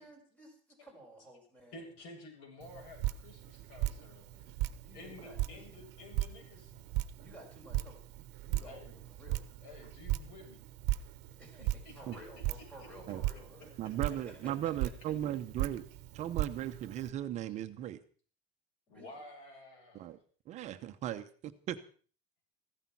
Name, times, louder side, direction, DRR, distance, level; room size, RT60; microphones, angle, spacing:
voice 1, 0.0-1.8 4.8-5.8 7.2-8.0 8.4-9.4 11.0-11.1 11.4-13.8 14.1-14.7 18.9-19.2, equal, 5° left, 0 dB, 5.2 m, -54 dB
voice 2, 1.7-4.5 4.9-6.8 8.6-9.0 9.6-10.6 11.6-12.4 12.8-13.9 18.9-20.1, left 2 dB, 85° left, 1 dB, 7.7 m, -52 dB
Drip, 2.6-17.1, right 15 dB, 55° right, 1.1 m, -38 dB
voice 3, 13.8-15.8 16.1-18.0 19.9-20.2 20.5-21.8, right 12 dB, 35° right, 8 dB, 0.9 m, -37 dB
15.5 x 13.5 x 6.0 m, 0.42 s
cardioid pair, 180°, 20 cm